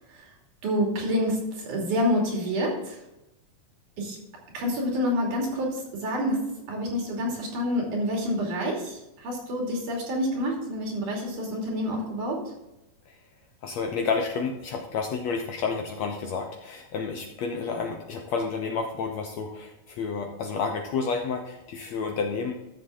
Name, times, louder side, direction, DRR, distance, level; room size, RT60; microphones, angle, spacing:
voice 1, 0.6-3.0 4.0-4.2 4.5-12.4, equal, 65° right, -1 dB, 4.2 m, -28 dB
voice 2, 13.6-22.5, left 5 dB, 70° left, 3 dB, 1.8 m, -30 dB
13.0 x 7.4 x 3.9 m, 0.92 s
omnidirectional pair, 3.9 m